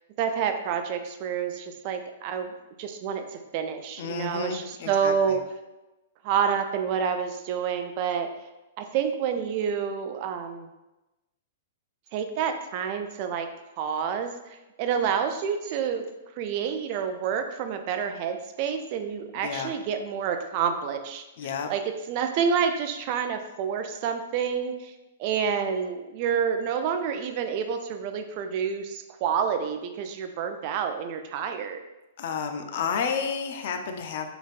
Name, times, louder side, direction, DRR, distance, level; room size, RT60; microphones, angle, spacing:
voice 1, 0.2-2.5 2.8-5.4 6.2-8.3 8.8-10.7 12.1-13.5 13.8-16.1 16.4-21.2 21.7-24.9 25.2-31.8, right 7 dB, 45° right, 7 dB, 0.4 m, -28 dB
voice 2, 4.0-5.4 19.4-19.7 21.4-21.7 32.2-34.3, left 6 dB, 55° left, 6 dB, 0.5 m, -31 dB
3.9 x 3.4 x 2.5 m, 1.0 s
figure-of-eight pair, 110°, 0 cm